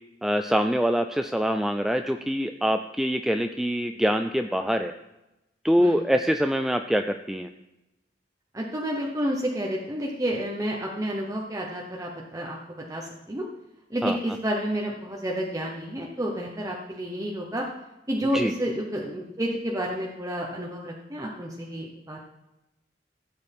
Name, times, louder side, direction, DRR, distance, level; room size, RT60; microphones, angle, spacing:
voice 1, 0.2-4.9 5.6-7.5 14.0-14.2 18.3-18.5, equal, ahead, 6 dB, 0.3 m, -24 dB
voice 2, 8.5-13.4 13.9-17.6 18.1-22.2, equal, 20° right, -2 dB, 1.0 m, -30 dB
16.5 x 8.0 x 3.5 m, 0.95 s
head